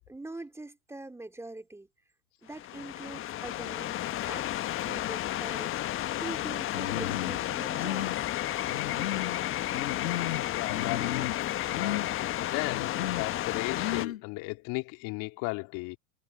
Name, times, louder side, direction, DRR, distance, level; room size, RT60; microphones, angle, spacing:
voice 1, 0.1-1.9 2.4-4.0 4.3-8.3, right 2 dB, 5° right, 2.9 m, -43 dB
sound 1, 2.5-14.1, left 13 dB, 30° left, 1.3 m, -32 dB
Human voice, 6.7-7.4 7.7-8.2 8.7-9.4 9.7-10.4 10.7-11.4 11.7-12.1 12.7-13.3 13.7-14.2, left 13 dB, 65° left, 7.9 m, -34 dB
voice 2, 10.5-16.0, left 26 dB, 45° left, 3.3 m, -36 dB
hypercardioid pair, 110°, 44 cm